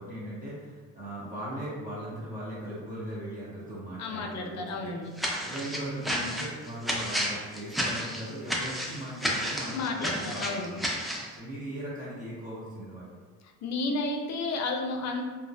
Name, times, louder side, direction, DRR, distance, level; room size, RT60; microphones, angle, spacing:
voice 1, 0.0-4.9 5.4-10.8 11.4-13.2, right 1 dB, 25° right, -8 dB, 0.8 m, -38 dB
voice 2, 4.0-5.1 9.7-10.7 13.6-15.2, left 3 dB, 60° left, 2 dB, 0.5 m, -32 dB
sound 1, 5.2-11.3, equal, ahead, 0.3 m, -31 dB
2.2 x 2.1 x 2.6 m, 1.4 s
cardioid pair, 90°, 30 cm